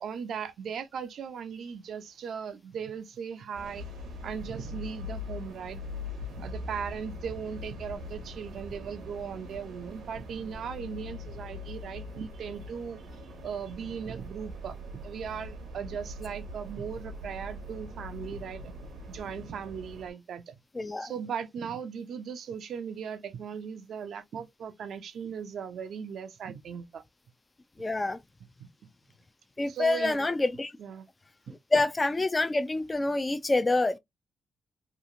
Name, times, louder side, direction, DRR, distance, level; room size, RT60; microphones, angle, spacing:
voice 1, 0.0-3.8 4.2-5.8 6.3-13.0 13.4-14.8 15.0-18.7 19.1-20.5 21.0-27.0 29.6-30.3 30.8-31.1, right 7 dB, 70° right, 0.4 m, -38 dB
sound 1, 3.5-20.1, left 1 dB, 90° right, 0.8 m, -42 dB
voice 2, 20.7-21.1 27.8-28.2 29.6-30.7 31.7-34.0, left 2 dB, 25° left, 0.3 m, -27 dB
2.9 x 2.4 x 2.5 m
supercardioid pair, 60°, 0 cm